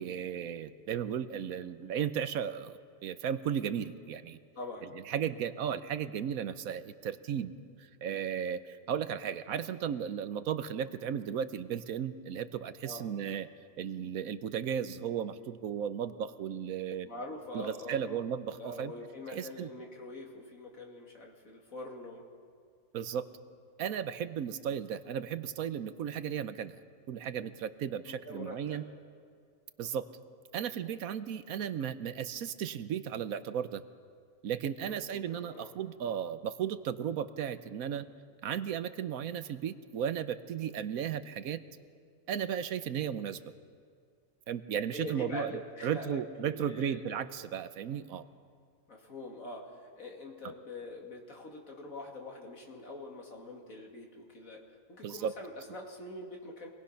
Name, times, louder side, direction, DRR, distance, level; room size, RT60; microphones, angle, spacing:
voice 1, 0.0-4.4 5.1-7.5 7.8-13.5 13.8-17.1 17.5-18.9 19.3-19.7 22.9-23.3 23.8-26.8 27.1-28.8 29.8-30.1 30.5-33.8 34.4-38.1 38.4-41.6 42.3-43.4 44.5-45.5 45.8-48.2 55.0-55.3, right 8 dB, 80° right, 12 dB, 1.2 m, -35 dB
voice 2, 4.5-5.0 12.8-13.1 17.0-18.2 18.6-22.3 28.1-28.9 34.8-35.7 44.9-47.0 48.9-56.7, left 2 dB, 75° left, 0 dB, 3.0 m, -44 dB
26.5 x 19.5 x 5.8 m, 2.1 s
omnidirectional pair, 1.5 m